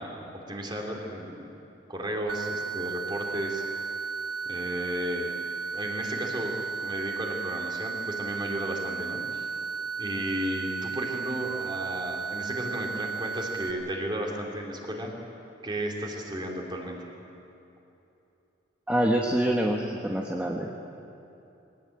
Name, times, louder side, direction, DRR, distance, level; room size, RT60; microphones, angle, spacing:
voice 1, 0.0-1.5 1.9-3.6 4.5-5.3 5.7-6.5 6.8-9.5 10.0-15.1 15.6-17.1, right 1 dB, 25° right, 0 dB, 3.4 m, -34 dB
sound 1, 2.3-13.7, right 5 dB, 55° right, 1.7 m, -34 dB
voice 2, 18.9-20.7, right 1 dB, 5° right, -1 dB, 1.3 m, -26 dB
22.0 x 18.5 x 8.8 m, 2.9 s
head